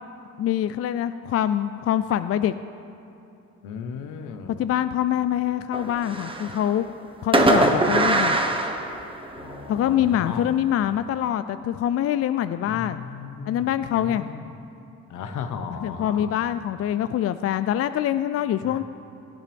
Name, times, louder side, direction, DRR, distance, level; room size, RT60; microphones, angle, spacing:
voice 1, 0.4-2.5 4.6-6.9 7.2-8.4 9.7-13.0 13.5-14.3 15.8-18.8, left 11 dB, 50° left, 12 dB, 0.4 m, -24 dB
voice 2, 3.6-4.6 7.5-7.9 9.4-11.0 12.7-14.4 15.1-16.3 18.6-18.8, left 6 dB, 80° left, 7 dB, 1.0 m, -36 dB
Fireworks, 5.7-6.7 7.3-9.6, right 2 dB, 15° right, 1.1 m, -22 dB
18.0 x 13.0 x 3.5 m, 2.9 s
cardioid pair, 90°, 30 cm